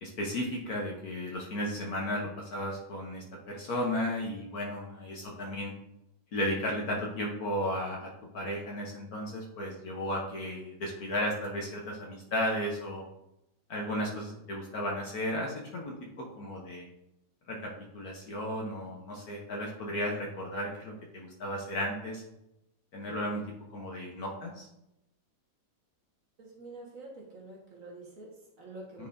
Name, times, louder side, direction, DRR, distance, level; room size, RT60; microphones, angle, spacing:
voice 1, 0.0-5.7 6.3-13.0 13.7-16.9 17.5-22.2 22.9-23.4 23.7-24.7 29.0-29.1, left 1 dB, 55° left, -1 dB, 1.2 m, -34 dB
voice 2, 26.4-29.1, right 2 dB, 45° right, -2 dB, 1.4 m, -47 dB
9.2 x 4.0 x 2.6 m, 0.86 s
omnidirectional pair, 2.1 m